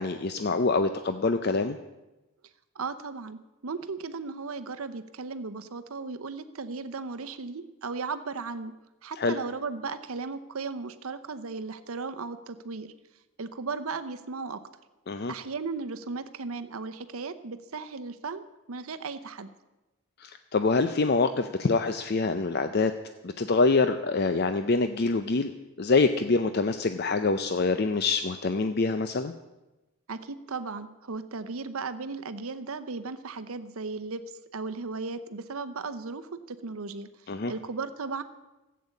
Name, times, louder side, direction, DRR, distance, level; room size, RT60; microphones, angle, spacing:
voice 1, 0.0-1.8 9.2-9.3 15.1-15.3 20.2-22.9 23.2-25.5 25.8-29.3 37.3-37.5, left 3 dB, 45° left, 9 dB, 0.5 m, -25 dB
voice 2, 2.7-8.7 9.0-12.9 13.4-14.6 15.3-19.5 30.1-34.2 34.5-38.2, right 4 dB, 75° right, 12 dB, 0.7 m, -36 dB
14.5 x 8.5 x 8.3 m, 1.0 s
head